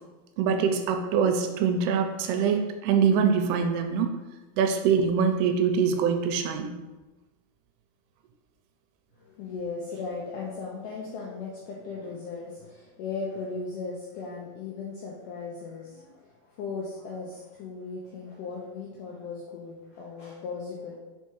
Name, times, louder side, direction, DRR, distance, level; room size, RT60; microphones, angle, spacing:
voice 1, 0.4-4.1 4.6-6.7, right 6 dB, 90° right, 6 dB, 2.7 m, -24 dB
voice 2, 9.2-21.0, left 4 dB, 85° left, -3 dB, 1.8 m, -37 dB
5.7 x 4.5 x 4.6 m, 1.2 s
omnidirectional pair, 4.7 m